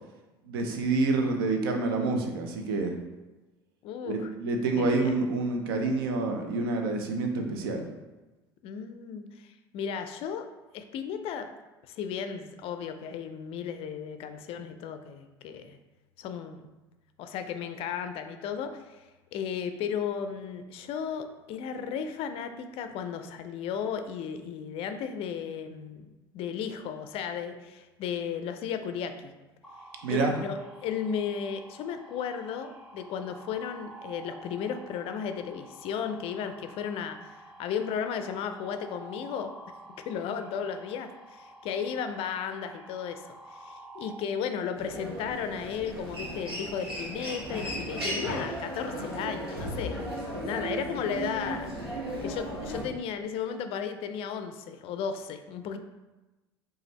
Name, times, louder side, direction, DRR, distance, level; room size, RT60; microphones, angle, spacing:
voice 1, 0.4-2.9 4.0-7.9 30.0-30.4, right 3 dB, 70° right, 4 dB, 0.6 m, -28 dB
voice 2, 3.8-4.3 4.8-5.1 8.6-10.5 10.7-11.5 11.9-15.8 16.2-16.6 17.2-29.3 30.1-39.5 40.1-50.0 50.4-51.7 52.2-55.8, left 7 dB, 50° left, 8 dB, 0.4 m, -35 dB
sound 1, 29.6-44.2, right 1 dB, 5° right, 0.9 m, -49 dB
Human voice, 44.7-52.8, right 1 dB, 85° right, 1.1 m, -35 dB
5.0 x 2.5 x 3.1 m, 1.1 s
figure-of-eight pair, 70°, 13 cm